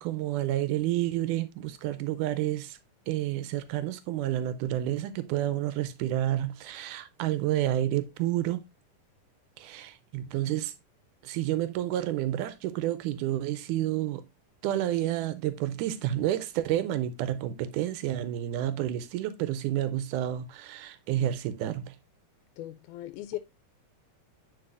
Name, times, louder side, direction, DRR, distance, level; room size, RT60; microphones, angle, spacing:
voice 1, 0.0-2.8 3.1-8.6 9.6-10.7 11.2-14.2 14.6-22.0, right 13 dB, 85° right, 2.1 m, -30 dB
voice 2, 22.6-23.4, left 15 dB, 85° left, 2.0 m, -38 dB
10.0 x 4.6 x 2.5 m
omnidirectional pair, 3.5 m